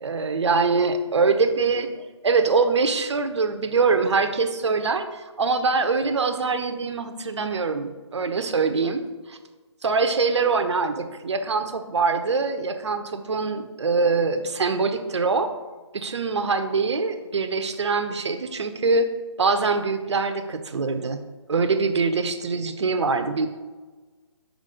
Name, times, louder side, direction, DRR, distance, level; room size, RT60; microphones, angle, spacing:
voice 1, 0.0-9.0 9.3-9.4 9.8-15.5 15.9-19.1 19.4-21.2 21.5-23.5, right 4 dB, 70° right, 8 dB, 0.7 m, -23 dB
5.1 x 3.9 x 4.9 m, 1.3 s
figure-of-eight pair, 145°, 15 cm